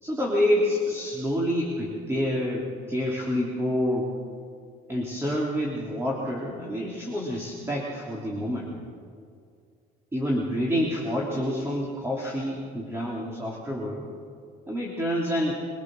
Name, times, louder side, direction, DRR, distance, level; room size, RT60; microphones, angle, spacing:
voice 1, 0.0-4.1 4.9-8.7 10.1-14.1 14.7-15.6, equal, 15° right, -3 dB, 3.2 m, -28 dB
23.5 x 19.0 x 6.5 m, 2.3 s
cardioid pair, 110°, 17 cm